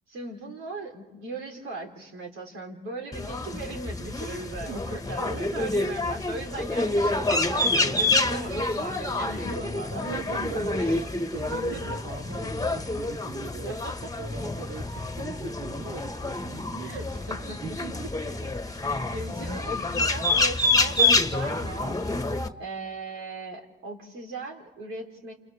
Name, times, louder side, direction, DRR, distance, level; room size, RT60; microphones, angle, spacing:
voice 1, 0.1-11.0 11.3-12.2 13.6-14.1 14.5-14.6 16.8-17.8 18.3-18.4 19.1-22.0 22.6-25.3, right 2 dB, 75° right, 1 dB, 3.7 m, -38 dB
sound 1, 3.1-22.5, left 2 dB, 15° left, 1.5 m, -28 dB
voice 2, 5.2-5.9 9.1-9.5 9.9-17.1 17.3-18.1 19.1-19.3, right 6 dB, 60° right, 6 dB, 1.3 m, -41 dB
28.5 x 28.5 x 3.5 m, 1.2 s
supercardioid pair, 55°, 21 cm